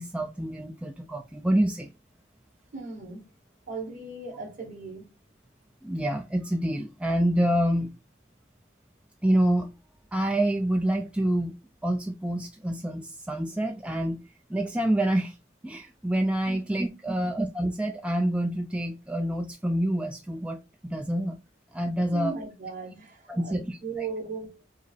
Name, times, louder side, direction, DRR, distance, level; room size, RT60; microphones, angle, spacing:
voice 1, 0.0-1.9 5.8-7.9 9.2-9.7 10.1-11.5 11.8-14.2 14.5-15.4 15.6-21.4 21.7-22.4 23.3-24.1, right 1 dB, 5° right, 0.3 m, -27 dB
voice 2, 2.7-3.2 3.7-5.1 16.5-16.6 17.0-17.3 22.1-24.6, right 3 dB, 45° right, 1.8 m, -37 dB
5.0 x 2.0 x 3.9 m
head